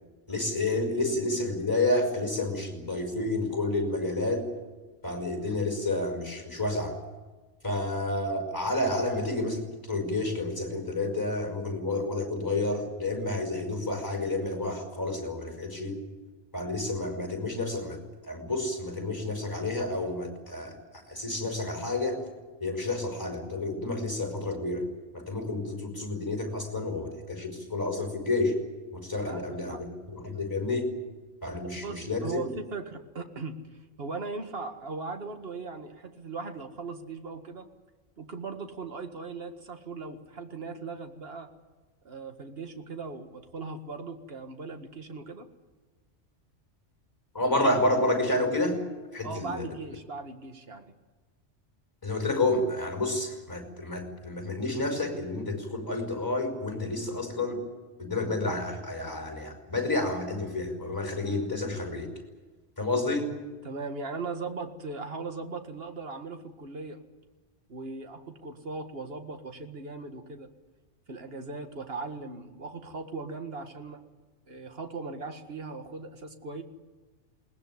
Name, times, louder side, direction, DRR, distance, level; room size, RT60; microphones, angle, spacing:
voice 1, 0.3-4.5 5.0-7.0 7.6-16.0 16.5-22.2 22.6-24.9 25.1-28.6 28.9-30.9 31.4-32.4 47.3-48.8 49.1-49.7 52.0-57.6 58.0-62.1 62.8-63.3, left 2 dB, 15° left, 5 dB, 5.6 m, -30 dB
voice 2, 29.3-29.8 31.8-33.6 34.0-37.7 38.2-41.5 42.0-45.5 49.2-50.9 63.6-67.0 67.7-70.5 71.1-74.0 74.5-76.6, right 4 dB, 55° right, 6 dB, 2.0 m, -38 dB
21.0 x 19.5 x 9.6 m, 1.3 s
omnidirectional pair, 1.2 m